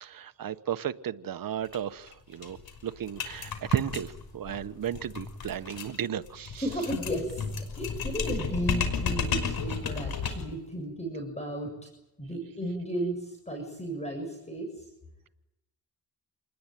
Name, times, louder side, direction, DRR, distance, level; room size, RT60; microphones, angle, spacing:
voice 1, 0.0-2.6 2.8-6.6, right 9 dB, 60° right, 1.3 m, -33 dB
sound 1, 1.7-1.8 2.1-2.2 2.4-10.6, left 6 dB, 70° left, 5.6 m, -33 dB
voice 2, 6.6-7.4 7.8-11.7 12.2-14.9, right 1 dB, 15° left, 7.4 m, -34 dB
28.5 x 20.5 x 9.2 m
cardioid pair, 85°, 38 cm